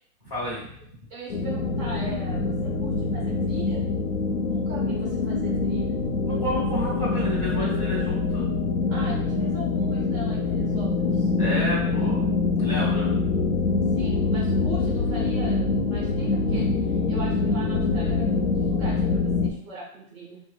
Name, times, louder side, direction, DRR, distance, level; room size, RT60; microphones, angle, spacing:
voice 1, 0.2-0.7 6.2-8.5 11.4-12.2 12.5-13.6, equal, 25° left, -8 dB, 0.8 m, -31 dB
voice 2, 1.1-3.8 4.4-5.9 8.9-11.3 13.9-20.4, right 2 dB, 5° right, -6 dB, 0.6 m, -40 dB
sound 1, 1.3-19.5, left 3 dB, 60° left, 0.5 m, -25 dB
2.8 x 2.1 x 3.2 m, 0.66 s
hypercardioid pair, 165°, 45 cm